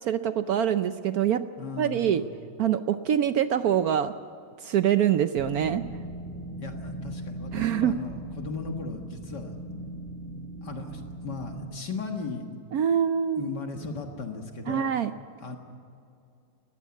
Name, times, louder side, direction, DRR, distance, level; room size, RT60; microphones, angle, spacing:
voice 1, 0.0-1.4 1.8-2.2 2.6-4.1 4.6-5.8 7.5-8.0 12.7-13.5 14.7-15.1, right 9 dB, 80° right, 11 dB, 0.8 m, -24 dB
voice 2, 1.6-2.3 6.6-9.5 10.6-12.5 13.4-14.9 15.4-15.6, left 4 dB, 55° left, 3 dB, 2.1 m, -36 dB
sound 1, 5.3-11.6, right 1 dB, 5° left, 6.7 m, -39 dB
20.5 x 15.5 x 8.5 m, 2.5 s
omnidirectional pair, 2.3 m